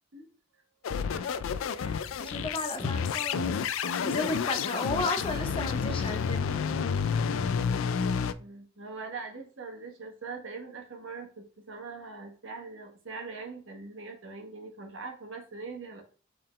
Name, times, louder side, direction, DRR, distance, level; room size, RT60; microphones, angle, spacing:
sound 1, 0.8-8.3, left 6 dB, 75° left, 0.3 m, -30 dB
voice 1, 1.1-1.4 8.4-16.0, right 4 dB, 65° right, 2 dB, 1.2 m, -42 dB
voice 2, 1.8-3.6 4.0-6.5, left 2 dB, 25° left, 6 dB, 0.6 m, -34 dB
4.4 x 3.7 x 3.1 m, 0.38 s
head